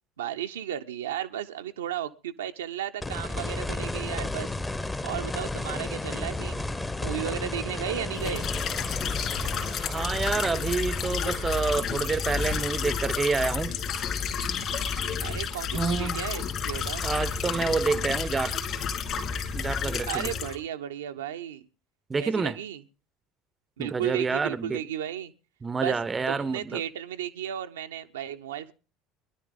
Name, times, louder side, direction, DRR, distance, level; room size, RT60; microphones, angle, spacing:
voice 1, 0.2-4.5 5.0-6.7 7.0-8.4 15.2-17.1 20.1-21.6 22.2-22.8 23.8-25.3 25.8-26.0 26.3-28.7, right 10 dB, 70° right, 0.6 m, -34 dB
sound 1, 3.0-13.9 16.2-16.3, left 2 dB, 15° left, 0.9 m, -34 dB
sound 2, 8.1-20.6, left 6 dB, 45° left, 2.7 m, -30 dB
voice 2, 9.8-13.8 15.7-16.2 17.0-18.6 19.5-20.3 22.1-22.6 23.8-24.8 25.6-26.8, right 4 dB, 20° right, 0.6 m, -28 dB
22.5 x 11.0 x 3.7 m
figure-of-eight pair, 65°, 0 cm